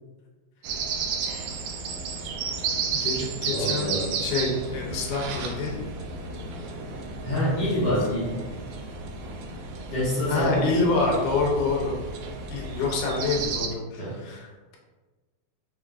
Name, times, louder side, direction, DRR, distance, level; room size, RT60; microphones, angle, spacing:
sound 1, 0.6-13.7, right 4 dB, 80° right, 1.5 m, -33 dB
voice 1, 2.9-3.9 4.2-5.8 10.3-12.0 12.5-14.8, left 3 dB, 90° left, -2 dB, 2.2 m, -27 dB
voice 2, 3.5-4.1 7.2-8.4 9.9-10.7 14.0-14.1, equal, 50° left, -8 dB, 1.5 m, -26 dB
5.3 x 3.5 x 2.4 m, 1.3 s
omnidirectional pair, 3.3 m